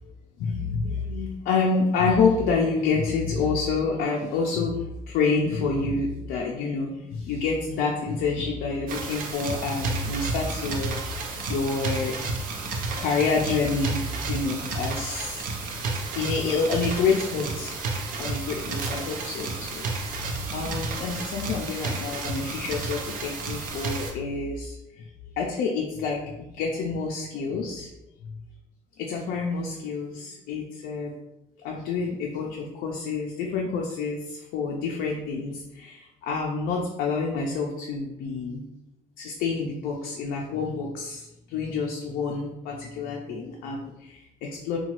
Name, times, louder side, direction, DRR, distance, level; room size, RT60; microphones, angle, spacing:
voice 1, 0.4-12.2 13.0-15.5 15.7-15.8 16.1-17.7 18.2-19.9 20.5-25.1 25.4-27.9 28.2-28.4 29.0-31.1 31.6-38.6 39.2-44.8, left 4 dB, 90° left, -1 dB, 0.4 m, -28 dB
sound 1, 8.9-24.1, right 3 dB, 70° right, 0.5 m, -32 dB
2.8 x 2.2 x 2.9 m, 0.94 s
cardioid pair, 105°, 15 cm